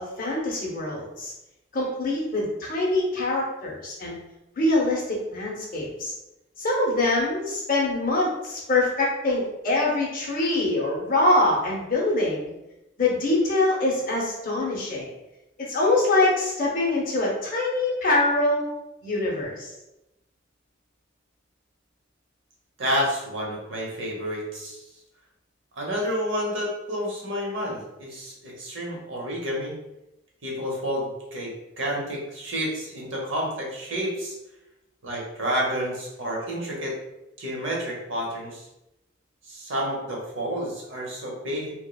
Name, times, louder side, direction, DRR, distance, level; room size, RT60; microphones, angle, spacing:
voice 1, 0.0-1.3 1.7-4.2 4.6-6.1 6.6-12.5 13.0-15.1 15.6-18.7 19.0-19.7, left 2 dB, 45° left, -4 dB, 0.7 m, -24 dB
voice 2, 22.8-24.8 25.8-29.8 30.4-31.5 31.8-34.3 35.0-36.9 37.4-38.6 39.5-41.7, equal, 75° right, -2 dB, 0.8 m, -29 dB
3.1 x 2.0 x 2.2 m, 0.93 s
head